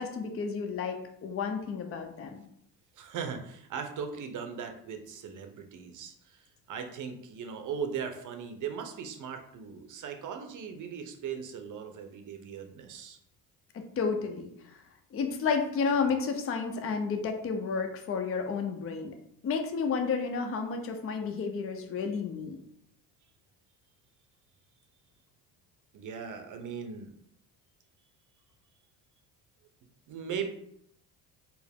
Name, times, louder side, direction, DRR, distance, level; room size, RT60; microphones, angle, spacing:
voice 1, 0.0-2.4 13.7-14.8 15.1-19.1 19.4-22.6, left 5 dB, 30° left, 4 dB, 0.6 m, -31 dB
voice 2, 3.0-6.4 6.7-13.2 25.9-27.1 30.1-30.5, right 6 dB, 40° right, 6 dB, 0.7 m, -38 dB
4.5 x 2.0 x 3.5 m, 0.72 s
hypercardioid pair, 70°, 48 cm